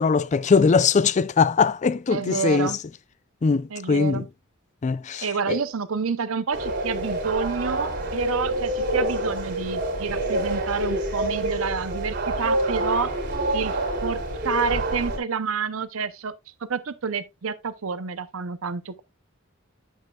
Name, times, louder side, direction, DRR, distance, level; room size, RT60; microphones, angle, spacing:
voice 1, 0.0-2.8 3.4-4.2 4.8-5.6, left 5 dB, 35° left, 0.4 m, -21 dB
voice 2, 2.1-2.8 3.7-4.3 5.2-13.1 13.5-13.8 14.0-14.2 14.4-16.3 16.7-19.0, right 5 dB, 80° right, 0.7 m, -28 dB
sound 1, 6.5-15.2, right 1 dB, 55° right, 3.6 m, -27 dB
9.2 x 7.7 x 2.3 m
head